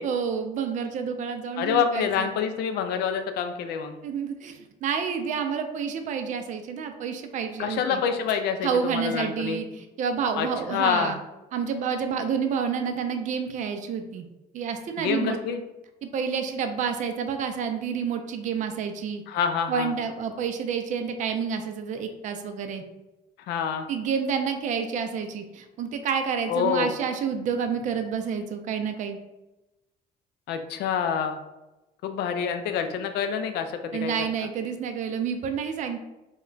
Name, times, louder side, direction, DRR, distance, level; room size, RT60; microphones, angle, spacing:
voice 1, 0.0-2.3 4.0-8.0 8.6-11.2 11.5-14.3 14.5-15.4 16.0-19.2 19.7-22.8 23.9-29.2 33.9-36.0, right 6 dB, 45° right, 6 dB, 0.4 m, -29 dB
voice 2, 1.6-4.0 7.6-9.6 10.4-11.2 15.0-15.6 19.3-19.9 23.5-23.9 26.5-26.9 30.5-31.4 32.0-34.1, left 7 dB, 75° left, 7 dB, 0.4 m, -27 dB
2.1 x 2.1 x 3.8 m, 0.99 s
cardioid pair, 110°, 17 cm